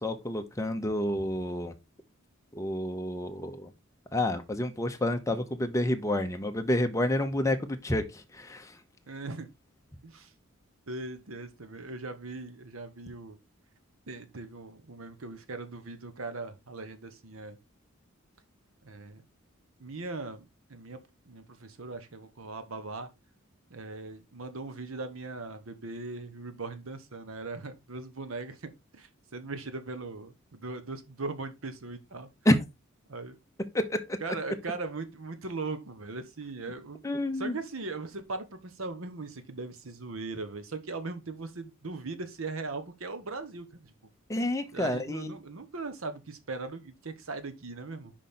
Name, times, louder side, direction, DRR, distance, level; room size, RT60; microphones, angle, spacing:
voice 1, 0.0-1.7 2.5-3.7 4.1-8.8 32.4-32.6 33.7-34.2 37.0-37.6 44.3-45.3, left 1 dB, 15° left, 0.9 m, -29 dB
voice 2, 9.1-9.5 10.0-10.3 10.9-13.4 14.1-17.6 18.8-19.2 19.8-21.0 21.3-23.1 23.7-32.3 33.1-33.3 34.2-37.0 37.4-43.9 44.7-48.1, right 3 dB, 80° right, 1.0 m, -39 dB
5.3 x 5.2 x 4.3 m
head